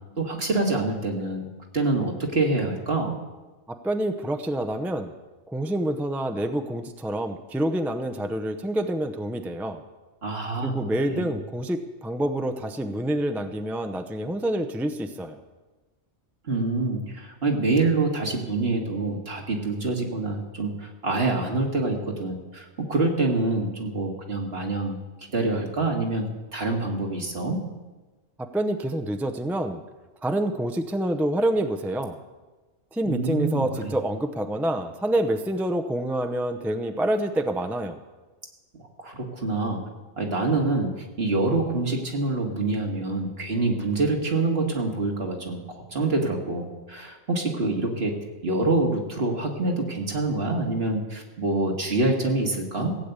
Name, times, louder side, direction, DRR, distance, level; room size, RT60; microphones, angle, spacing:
voice 1, 0.2-1.5 1.7-3.1 10.2-11.3 16.5-25.0 25.3-27.6 33.0-33.9 38.7-39.8 40.2-48.1 48.4-53.0, right 2 dB, 60° right, 1 dB, 2.2 m, -26 dB
voice 2, 3.7-5.1 5.5-9.8 10.6-15.4 28.4-29.8 30.2-32.2 32.9-38.0, right 1 dB, ahead, 7 dB, 0.6 m, -27 dB
16.0 x 8.5 x 8.2 m, 1.2 s
omnidirectional pair, 1.2 m